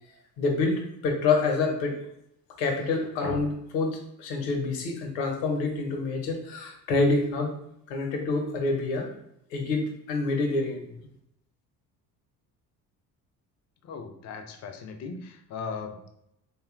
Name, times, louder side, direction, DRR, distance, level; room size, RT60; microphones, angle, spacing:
voice 1, 0.4-2.0 2.6-7.5 7.9-9.1 9.5-10.8, left 3 dB, 70° left, 3 dB, 0.8 m, -27 dB
voice 2, 13.8-16.2, left 5 dB, 35° left, 6 dB, 0.4 m, -38 dB
2.6 x 2.3 x 2.4 m, 0.76 s
hypercardioid pair, 60°, 49 cm